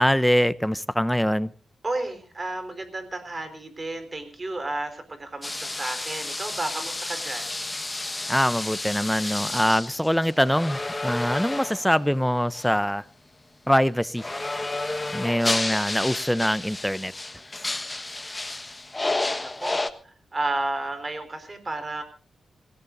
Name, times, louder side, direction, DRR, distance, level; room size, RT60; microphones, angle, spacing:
voice 1, 0.0-1.5 8.3-13.0 13.7-14.3 15.1-17.1, equal, ahead, 16 dB, 0.7 m, -23 dB
voice 2, 1.8-7.5 19.0-22.0, right 2 dB, 30° right, 9 dB, 4.2 m, -32 dB
sound 1, 5.4-12.0 12.5-12.7 14.2-19.9, left 2 dB, 20° left, 1.4 m, -31 dB
27.0 x 17.5 x 2.6 m, 0.39 s
cardioid pair, 85°, 0 cm